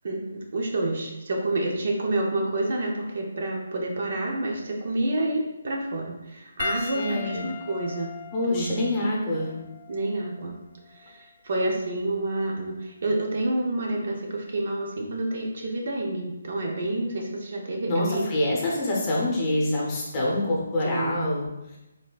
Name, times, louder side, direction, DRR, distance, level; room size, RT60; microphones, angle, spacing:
voice 1, 0.0-8.1 8.5-8.8 9.9-10.5 10.9-18.2 20.8-21.1, right 2 dB, 50° right, 0 dB, 0.7 m, -28 dB
Piano, 6.6-11.3 12.2-12.4 14.3-14.4, left 5 dB, 45° left, 0.4 m, -39 dB
voice 2, 6.9-7.5 8.3-9.5 17.9-21.8, left 1 dB, 20° left, -4 dB, 0.8 m, -26 dB
4.2 x 3.5 x 2.4 m, 0.97 s
hypercardioid pair, 165°, 0 cm